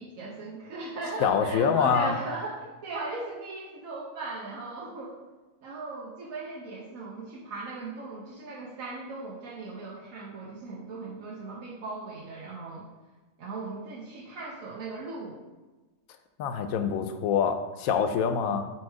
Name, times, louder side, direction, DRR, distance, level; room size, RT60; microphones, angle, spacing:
voice 1, 0.0-5.2 5.6-12.9 13.4-15.4, right 3 dB, 80° right, -4 dB, 1.2 m, -38 dB
voice 2, 1.2-2.1 16.4-18.6, left 7 dB, 90° left, 8 dB, 1.0 m, -25 dB
4.7 x 4.4 x 4.7 m, 1.2 s
omnidirectional pair, 1.4 m